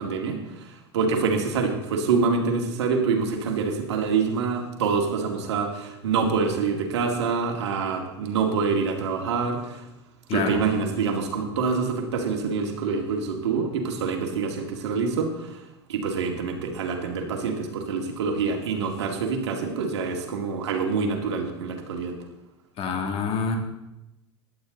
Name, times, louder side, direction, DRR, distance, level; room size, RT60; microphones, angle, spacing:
voice 1, 0.0-9.8 10.3-15.6 15.9-22.1, right 5 dB, 75° right, 3 dB, 2.5 m, -26 dB
voice 2, 10.3-10.6 22.8-23.6, left 5 dB, 45° left, 3 dB, 2.6 m, -27 dB
16.0 x 11.5 x 4.0 m, 0.97 s
hypercardioid pair, 90°, 14 cm